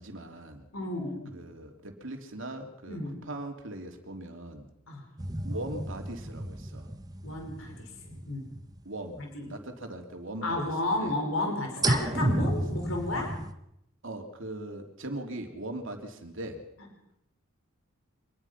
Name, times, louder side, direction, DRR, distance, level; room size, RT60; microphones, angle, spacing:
voice 1, 0.0-0.7 1.3-3.0 3.2-4.7 5.4-6.9 8.8-9.2 9.5-10.7 11.0-11.1 11.8-12.5 14.0-16.6, right 1 dB, 60° right, 4 dB, 3.2 m, -40 dB
voice 2, 0.7-1.4 2.9-3.2 4.9-5.0 7.2-8.5 9.2-9.5 10.4-13.3, left 2 dB, 70° left, 2 dB, 5.3 m, -32 dB
sound 1, 5.2-9.2 9.6-9.7 11.8-13.5, right 1 dB, 15° right, 1.1 m, -32 dB
25.5 x 20.5 x 5.9 m, 0.81 s
head